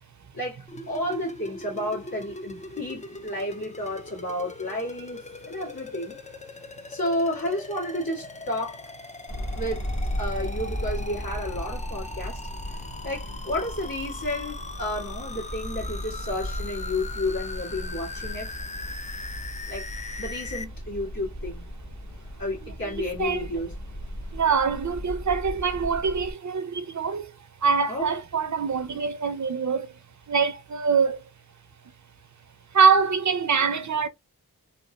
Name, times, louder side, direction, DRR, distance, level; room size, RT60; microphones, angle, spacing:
voice 1, 0.3-6.2 6.9-8.9 9.5-9.8 10.2-12.4 12.7-18.6 19.7-19.9 20.2-21.7 22.4-23.7 27.9-28.1, left 1 dB, 75° left, 2.0 m, -31 dB
sound 1, 0.7-20.6, left 3 dB, 20° left, 0.4 m, -40 dB
sound 2, 9.3-26.3, equal, 55° left, 1.6 m, -36 dB
voice 2, 22.6-23.5 24.3-27.2 27.6-29.9 30.3-31.2 32.7-34.1, right 5 dB, 55° right, 0.5 m, -24 dB
3.9 x 2.4 x 2.3 m
wide cardioid pair, 55°, 35 cm